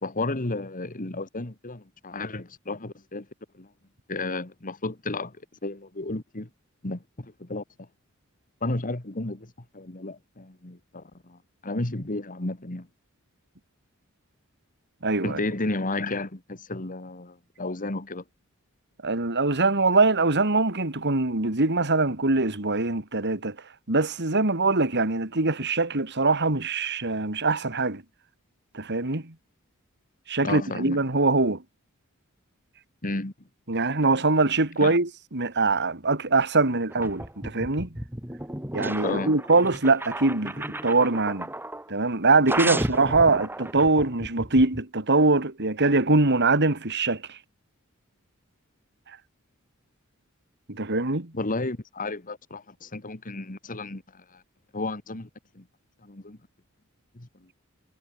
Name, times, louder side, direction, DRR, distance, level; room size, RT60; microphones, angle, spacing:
voice 1, 0.0-3.3 3.5-3.7 4.1-5.3 5.6-6.5 6.8-7.9 8.6-12.9 15.2-18.2 30.4-31.0 33.0-33.3 34.8-34.9 39.0-39.4 42.6-42.8 51.3-54.4 54.7-55.3 55.6-55.7 56.0-56.4 57.2-57.3, left 2 dB, 40° left, 1.9 m, -32 dB
voice 2, 15.0-15.4 19.0-23.6 23.9-28.0 28.7-29.3 30.3-31.6 33.7-37.9 38.7-41.5 41.9-47.4 50.7-51.3, right 3 dB, 55° right, 2.9 m, -23 dB
sound 1, 36.9-41.9 42.5-44.8, right 1 dB, 10° right, 2.3 m, -33 dB
head